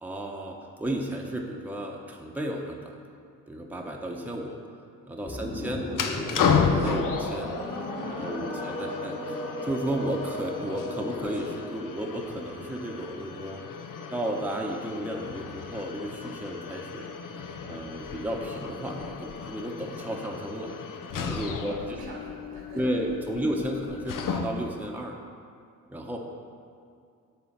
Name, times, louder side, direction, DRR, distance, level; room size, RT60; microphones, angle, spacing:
voice 1, 0.0-3.0 3.5-4.6 5.1-7.5 8.0-13.6 14.1-17.1 17.7-20.7 21.1-21.7 22.7-25.2 25.9-26.2, right 1 dB, 5° right, 0 dB, 1.0 m, -33 dB
sound 1, 5.3-11.7, left 1 dB, 20° left, 1.5 m, -35 dB
sound 2, 5.9-24.8, left 6 dB, 50° left, 0.7 m, -33 dB
voice 2, 21.5-23.0 23.4-23.6, right 2 dB, 75° right, -2 dB, 1.6 m, -46 dB
7.0 x 4.2 x 5.9 m, 2.3 s
hypercardioid pair, 40°, 43 cm